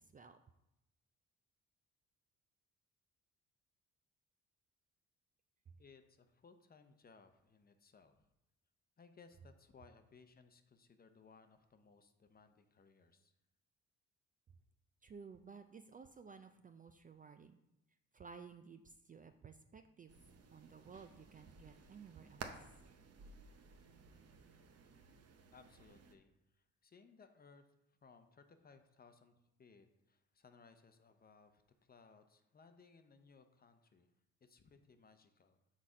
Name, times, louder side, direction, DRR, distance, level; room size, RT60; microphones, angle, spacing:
voice 1, 5.8-8.3 9.0-13.3 25.5-27.7 28.0-34.1 34.4-35.6, left 5 dB, 30° left, 8 dB, 0.7 m, -64 dB
voice 2, 15.0-17.6 18.1-20.1 20.5-22.4, right 5 dB, 30° right, 8 dB, 0.3 m, -55 dB
sound 1, 20.1-26.1, right 5 dB, 55° right, 0.8 m, -55 dB
6.3 x 4.1 x 4.9 m, 0.87 s
cardioid pair, 90°, 30 cm